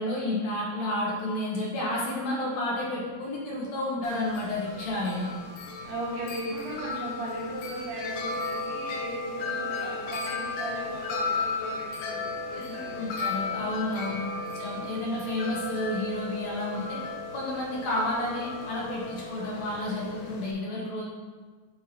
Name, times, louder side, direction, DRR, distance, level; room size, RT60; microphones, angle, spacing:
voice 1, 0.0-5.3 12.5-14.2 14.5-17.0 17.3-21.1, left 1 dB, 60° left, -5 dB, 2.2 m, -31 dB
Wind chime, 4.0-20.5, left 3 dB, 80° left, 2.3 m, -35 dB
voice 2, 5.8-13.2 14.1-14.5, right 1 dB, 85° right, -8 dB, 4.2 m, -37 dB
11.0 x 4.6 x 2.9 m, 1.4 s
omnidirectional pair, 4.0 m